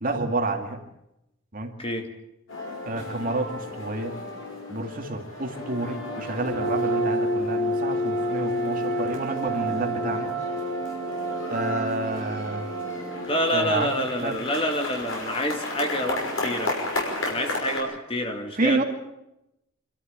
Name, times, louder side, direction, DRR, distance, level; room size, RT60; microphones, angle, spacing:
voice 1, 0.0-0.8 1.5-1.7 2.9-4.1 4.7-10.3 11.5-12.7 13.5-13.9 14.2-14.4 18.6-18.8, right 2 dB, 40° right, 4 dB, 2.3 m, -29 dB
sound 1, 2.5-17.8, equal, 75° left, 5.9 m, -30 dB
voice 2, 13.2-16.8 17.2-18.8, equal, 25° left, 4 dB, 2.2 m, -27 dB
26.5 x 13.0 x 8.8 m, 0.88 s
head